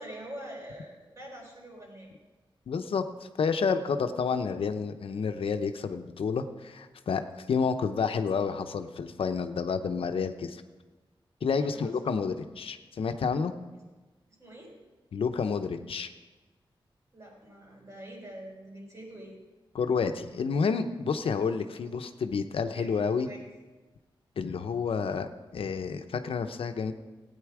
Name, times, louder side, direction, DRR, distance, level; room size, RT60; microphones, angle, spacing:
voice 1, 0.0-2.1 11.6-12.0 14.4-14.7 17.1-19.4 21.8-21.9 22.7-22.9 23.2-23.4, right 1 dB, 35° right, -1 dB, 4.1 m, -45 dB
voice 2, 2.7-10.6 11.4-13.5 15.1-16.1 19.7-23.3 24.4-26.9, left 5 dB, 90° left, 8 dB, 0.8 m, -30 dB
16.5 x 9.1 x 4.8 m, 1.2 s
wide cardioid pair, 130°, 9 cm